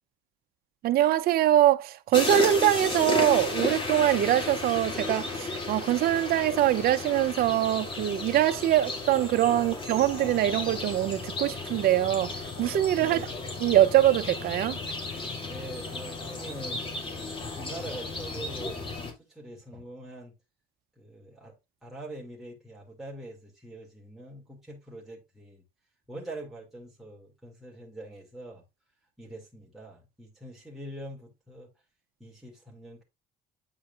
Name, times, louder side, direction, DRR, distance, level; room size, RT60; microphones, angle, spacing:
voice 1, 0.8-13.3 13.6-14.8, right 13 dB, 65° right, 0.7 m, -23 dB
sound 1, 2.1-19.1, left 3 dB, 30° left, 2.7 m, -34 dB
voice 2, 13.0-13.4 15.4-18.8 19.3-20.3 21.0-21.6 21.8-25.6 26.1-28.6 29.2-31.7 32.2-33.0, right 1 dB, ahead, 2.4 m, -44 dB
9.1 x 4.7 x 2.5 m
cardioid pair, 110°, 17 cm